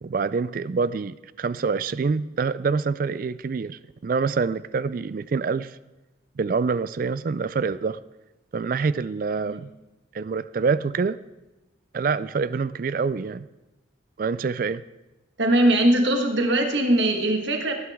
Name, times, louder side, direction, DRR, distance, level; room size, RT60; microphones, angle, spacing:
voice 1, 0.0-5.8 6.4-8.0 8.5-9.7 10.1-11.2 11.9-13.5 14.2-14.8, right 5 dB, 45° right, 17 dB, 0.3 m, -26 dB
voice 2, 15.4-17.7, right 1 dB, 65° right, 4 dB, 1.6 m, -21 dB
19.0 x 10.5 x 3.6 m, 1.1 s
head